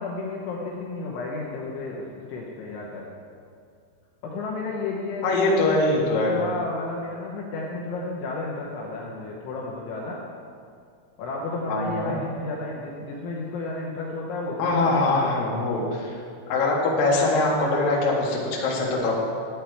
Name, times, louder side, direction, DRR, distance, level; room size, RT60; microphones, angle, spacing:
voice 1, 0.0-3.1 4.2-5.7 6.3-10.2 11.2-15.4, left 3 dB, 75° left, -3 dB, 3.2 m, -32 dB
voice 2, 5.2-6.3 11.7-12.2 14.6-16.1 16.5-19.2, left 2 dB, 60° left, -3 dB, 2.8 m, -23 dB
11.5 x 8.7 x 4.6 m, 2.3 s
omnidirectional pair, 5.9 m